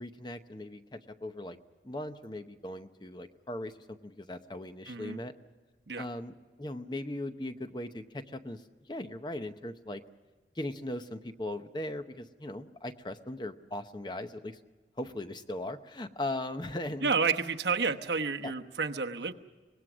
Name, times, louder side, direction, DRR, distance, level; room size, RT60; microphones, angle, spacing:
voice 1, 0.0-1.6 1.8-5.3 6.0-10.0 10.5-14.6 15.0-17.1 18.4-18.5, left 1 dB, 25° left, 9 dB, 0.8 m, -39 dB
voice 2, 4.9-5.2 5.9-6.0 17.0-19.3, right 5 dB, 75° right, 5 dB, 1.1 m, -30 dB
24.5 x 19.5 x 6.2 m, 1.3 s
head